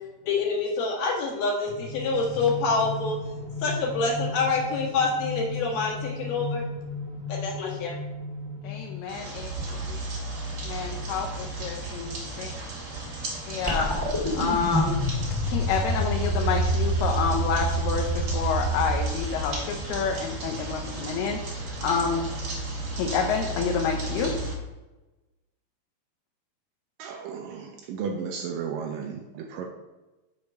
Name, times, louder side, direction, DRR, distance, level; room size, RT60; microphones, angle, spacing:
voice 1, 0.2-3.2 3.6-6.6 7.3-7.9, left 4 dB, 60° left, -3 dB, 3.1 m, -26 dB
sound 1, 1.7-9.6, left 2 dB, 65° right, 2.1 m, -35 dB
voice 2, 8.6-9.5 9.9-10.0 10.6-12.5 13.5-13.9 14.3-15.0 15.5-22.3 22.9-24.3, left 6 dB, 80° left, 1 dB, 2.7 m, -28 dB
sound 2, 9.1-24.5, right 2 dB, 40° right, 2.1 m, -34 dB
sound 3, 13.7-20.2, right 1 dB, 10° left, 1.4 m, -27 dB
voice 3, 27.0-29.7, right 6 dB, 80° right, 3 dB, 1.9 m, -34 dB
6.9 x 5.0 x 6.4 m, 1.1 s
omnidirectional pair, 4.7 m